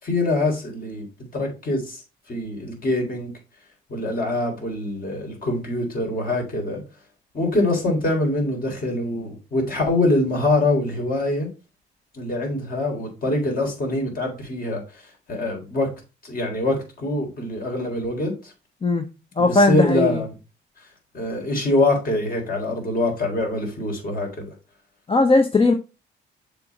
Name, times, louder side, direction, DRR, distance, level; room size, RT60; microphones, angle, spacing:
voice 1, 0.0-1.1 1.3-2.0 2.3-3.3 3.9-6.8 7.3-11.5 12.1-14.8 15.3-15.9 16.2-18.5 19.5-20.3 21.1-24.5, left 2 dB, 45° left, 3.6 m, -24 dB
voice 2, 19.4-20.2 25.1-25.7, left 2 dB, 30° left, 0.9 m, -18 dB
6.8 x 4.0 x 4.6 m
cardioid pair, 90°, 20 cm